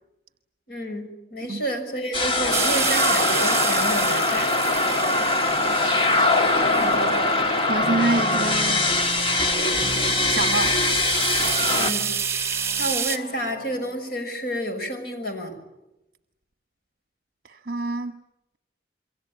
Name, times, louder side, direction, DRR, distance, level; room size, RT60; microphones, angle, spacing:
voice 1, 0.7-4.5 11.7-12.5 12.8-15.5, equal, 60° left, 6.3 m, -30 dB
sound 1, 2.1-11.9, left 2 dB, 30° left, 1.8 m, -22 dB
sound 2, 2.5-7.7 8.2-8.3 8.7-13.2, right 6 dB, 15° right, 2.6 m, -29 dB
voice 2, 6.7-7.2 7.7-8.9 10.3-10.8 17.4-18.2, right 3 dB, 55° right, 1.1 m, -27 dB
sound 3, 7.8-14.0, right 1 dB, 35° right, 3.8 m, -38 dB
28.0 x 23.5 x 8.8 m
head